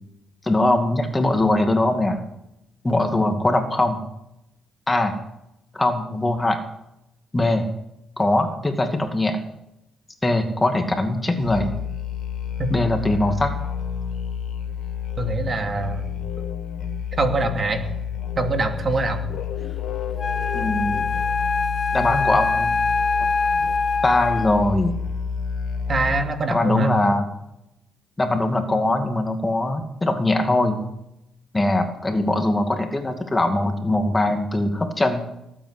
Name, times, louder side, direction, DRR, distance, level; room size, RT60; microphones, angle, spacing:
voice 1, 0.4-2.2 2.8-4.0 4.9-5.1 5.7-6.6 7.3-7.7 8.2-9.4 10.2-11.7 12.7-13.5 20.5-21.0 21.9-22.7 24.0-24.9 26.5-27.3 28.2-30.8 31.5-35.2, left 2 dB, 20° left, 5 dB, 2.2 m, -21 dB
Musical instrument, 11.4-26.4, left 7 dB, 70° left, 1.7 m, -30 dB
voice 2, 15.2-16.5 17.1-17.8 18.4-19.2 25.9-26.9, right 3 dB, 40° right, 4 dB, 2.7 m, -24 dB
Wind instrument woodwind instrument, 20.2-24.8, left 4 dB, 40° left, 0.8 m, -23 dB
19.0 x 8.9 x 8.2 m, 0.85 s
cardioid pair, 90°, 0 cm